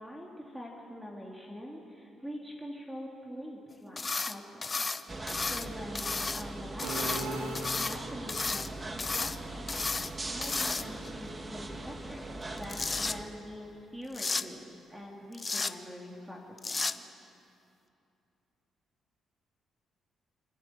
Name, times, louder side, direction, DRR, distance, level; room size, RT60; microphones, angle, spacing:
voice 1, 0.0-5.2 5.5-8.6 8.9-9.7 10.0-17.0, equal, 5° right, -2 dB, 2.6 m, -44 dB
sound 1, 4.0-4.4 4.6-5.7 6.0-6.4 6.8-8.0 8.3-8.7 9.0-9.4 9.7-10.1 10.4-11.1 12.4-13.2 14.1-14.4 15.3-15.7 16.6-16.9, left 3 dB, 25° left, 0.7 m, -33 dB
sound 2, 5.1-13.2, right 2 dB, 25° right, 1.6 m, -41 dB
sound 3, 6.8-8.4, right 2 dB, 85° right, 2.4 m, -38 dB
27.0 x 10.5 x 9.1 m, 2.7 s
cardioid pair, 90°, 0 cm